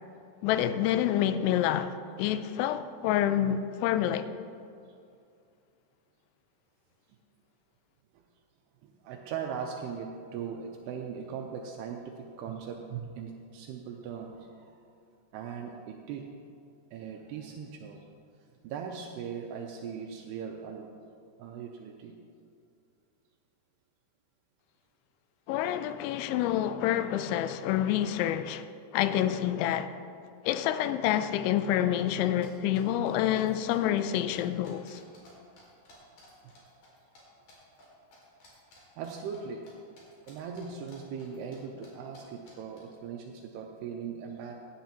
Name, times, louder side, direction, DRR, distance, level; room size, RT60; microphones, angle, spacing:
voice 1, 0.4-1.9 2.2-4.3 25.5-28.7 28.9-29.9 30.4-35.0, left 11 dB, 90° left, 2.9 m, -27 dB
voice 2, 8.8-14.7 15.3-16.2 16.9-18.0 18.6-20.9 21.4-22.1 39.0-39.6 40.3-44.5, right 7 dB, 85° right, 2.4 m, -39 dB
sound 1, 32.4-35.3 35.6-37.2 37.5-37.8 38.1-39.7 40.0-41.6 41.8-41.9 42.1-42.2 42.5-42.8, left 1 dB, 50° left, 3.5 m, -55 dB
16.5 x 10.0 x 2.9 m
omnidirectional pair, 5.3 m